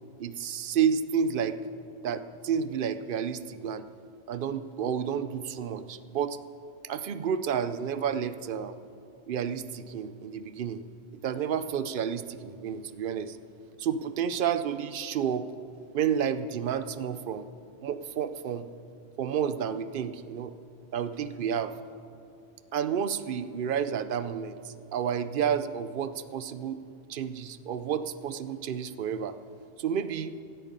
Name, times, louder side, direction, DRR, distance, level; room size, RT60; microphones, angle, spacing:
voice 1, 0.2-1.6 2.0-3.8 4.3-6.4 6.8-8.8 9.3-10.8 11.1-13.4 13.8-15.5 15.9-17.5 17.8-18.7 19.2-20.5 20.9-21.7 22.7-26.8 27.1-29.4 29.8-30.3, right 8 dB, 60° right, 13 dB, 0.6 m, -30 dB
15.5 x 10.0 x 5.4 m, 2.6 s
omnidirectional pair, 1.2 m